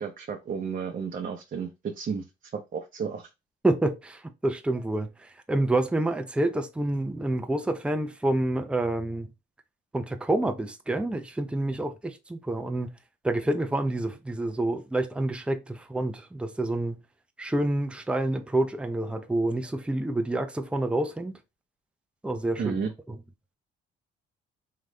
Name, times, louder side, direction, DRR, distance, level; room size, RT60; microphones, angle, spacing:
voice 1, 0.0-2.2 2.5-3.3 22.6-22.9, right 6 dB, 45° right, 0.8 m, -32 dB
voice 2, 3.6-9.3 9.9-12.9 13.2-17.0 17.4-21.4 22.2-22.7 23.1-23.2, right 2 dB, 5° right, 0.6 m, -28 dB
3.8 x 3.2 x 3.3 m
cardioid pair, 90°, 20 cm